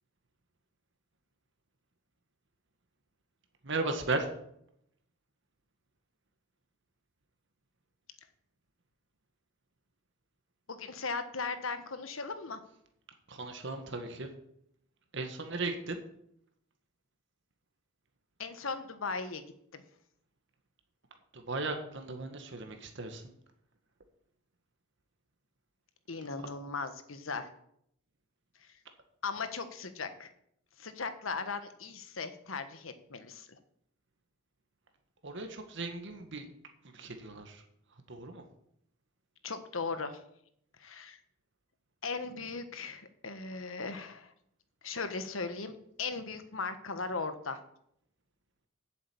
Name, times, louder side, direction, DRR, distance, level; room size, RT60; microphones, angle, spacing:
voice 1, 3.6-4.3 13.3-14.3 15.1-16.0 21.3-23.3 35.2-36.5 36.9-37.6 37.9-38.4, right 3 dB, 60° right, 5 dB, 1.6 m, -36 dB
voice 2, 10.7-12.6 18.4-19.4 19.7-19.8 26.1-27.5 29.2-30.3 30.8-33.6 39.4-40.2 40.8-41.2 42.0-44.3 44.8-47.6, left 4 dB, 80° left, 10 dB, 1.3 m, -38 dB
8.1 x 7.4 x 8.6 m, 0.73 s
head